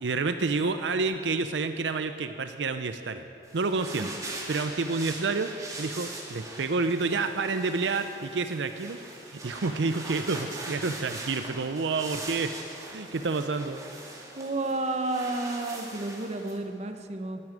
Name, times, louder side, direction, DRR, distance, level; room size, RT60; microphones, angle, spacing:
voice 1, 0.0-3.2 3.5-4.1 4.5-5.5 5.8-12.5 12.9-13.8, right 4 dB, 80° right, 9 dB, 0.6 m, -29 dB
sound 1, 3.4-16.6, right 2 dB, 20° right, 2.1 m, -41 dB
voice 2, 14.4-17.4, right 2 dB, 40° right, 6 dB, 0.9 m, -31 dB
12.0 x 9.6 x 9.0 m, 2.8 s
head